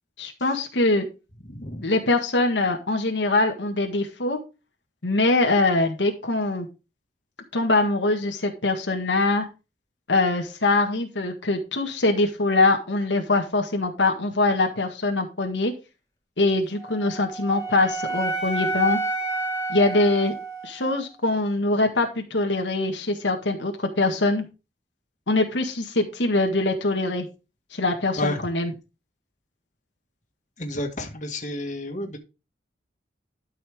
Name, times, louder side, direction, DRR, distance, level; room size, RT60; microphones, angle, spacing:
voice 1, 0.2-1.1 1.8-4.4 5.0-6.7 7.5-9.5 10.1-15.7 16.4-19.0 19.7-20.3 20.6-24.5 25.3-27.3 27.7-28.7, left 2 dB, 85° left, 1.7 m, -23 dB
voice 2, 1.5-1.9 28.2-28.4 30.6-32.2, left 1 dB, 45° left, 1.9 m, -30 dB
Wind instrument woodwind instrument, 16.8-21.0, right 2 dB, 20° left, 1.9 m, -30 dB
12.0 x 5.8 x 3.6 m
head